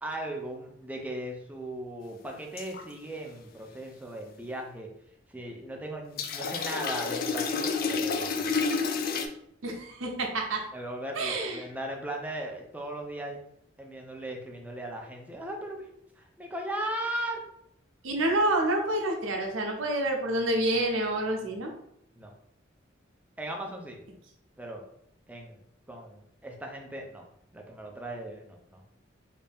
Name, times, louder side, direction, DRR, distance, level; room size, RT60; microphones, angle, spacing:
voice 1, 0.0-4.9 5.3-8.5 10.7-13.4 13.8-15.9 16.2-17.4 22.2-22.3 23.4-24.0 24.6-24.8 25.3-25.6 25.9-27.2 27.5-28.8, right 1 dB, 10° right, 1 dB, 0.5 m, -38 dB
sound 1, 2.6-2.8 6.2-9.3, left 4 dB, 50° left, 0.4 m, -29 dB
voice 2, 9.6-10.6 11.2-11.6 18.0-21.7, right 1 dB, 85° right, 1 dB, 0.8 m, -28 dB
3.3 x 2.7 x 3.4 m, 0.73 s
head